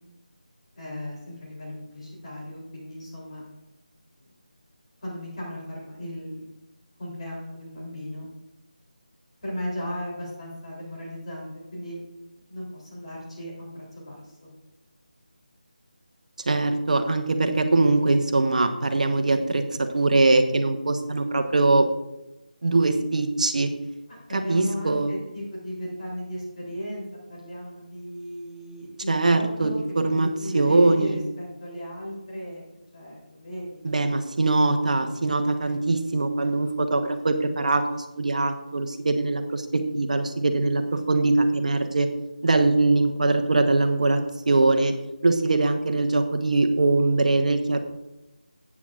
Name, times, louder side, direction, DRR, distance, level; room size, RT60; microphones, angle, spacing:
voice 1, 0.7-3.4 4.2-4.3 5.0-6.4 7.0-8.2 9.4-12.0 12.5-14.5 24.3-27.0 27.3-29.8 30.0-32.6 32.9-33.8 34.8-35.2, equal, 45° left, -5 dB, 3.3 m, -36 dB
voice 2, 16.5-21.9 22.6-23.7 24.3-25.1 29.1-29.7 30.0-30.3 30.5-31.2 33.8-42.1 42.4-44.2 44.5-44.9 45.2-47.8, right 2 dB, 55° right, 6 dB, 1.0 m, -22 dB
14.5 x 8.5 x 2.5 m, 0.96 s
figure-of-eight pair, 160°, 5 cm